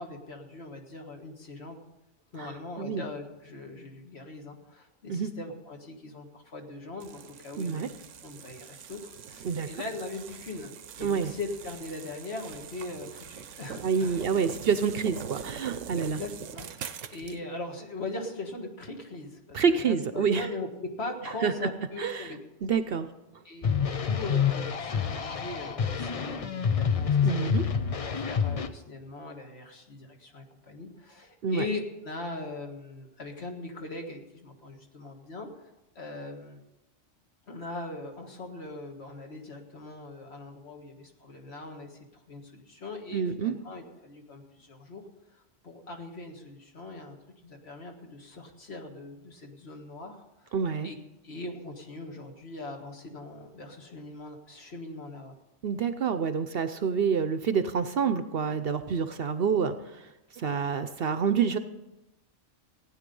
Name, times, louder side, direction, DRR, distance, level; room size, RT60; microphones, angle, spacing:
voice 1, 0.0-1.8 2.3-7.9 8.2-10.7 11.0-14.2 15.9-22.4 23.5-27.5 28.1-35.5 36.0-36.6 37.5-42.0 42.3-45.0 45.3-47.2 47.4-50.5 50.8-51.0 51.2-55.4 60.5-60.6, left 2 dB, 60° left, 2 dB, 1.9 m, -40 dB
voice 2, 2.4-3.0 5.1-5.3 7.6-7.9 9.4-9.7 11.0-11.3 13.8-16.2 19.5-20.5 21.2-21.5 22.0-22.3 22.6-23.1 27.2-27.6 31.4-31.7 43.1-43.5 50.5-50.9 55.6-61.6, right 6 dB, 55° right, 10 dB, 0.8 m, -28 dB
sound 1, 7.0-17.4, right 8 dB, 90° right, 1.1 m, -43 dB
sound 2, 23.6-28.7, left 7 dB, 40° left, 0.5 m, -27 dB
16.0 x 9.5 x 5.4 m, 0.97 s
omnidirectional pair, 1.3 m